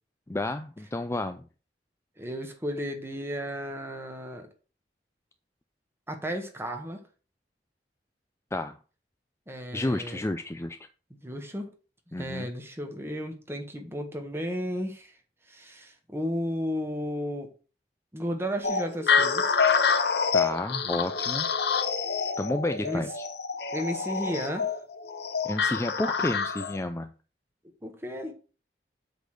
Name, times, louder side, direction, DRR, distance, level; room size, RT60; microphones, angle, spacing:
voice 1, 0.3-1.5 8.5-8.8 9.7-10.8 12.1-12.5 20.3-21.5 22.4-23.2 25.4-27.1, left 2 dB, 15° left, 8 dB, 0.5 m, -31 dB
voice 2, 2.2-4.5 6.1-7.0 9.5-10.2 11.1-11.7 12.2-15.2 15.5-17.5 18.1-19.6 22.8-23.1 23.7-24.8 27.8-28.3, equal, 15° right, 4 dB, 1.6 m, -34 dB
sound 1, 18.6-26.8, left 5 dB, 70° left, 1.0 m, -27 dB
8.2 x 4.1 x 6.7 m, 0.36 s
head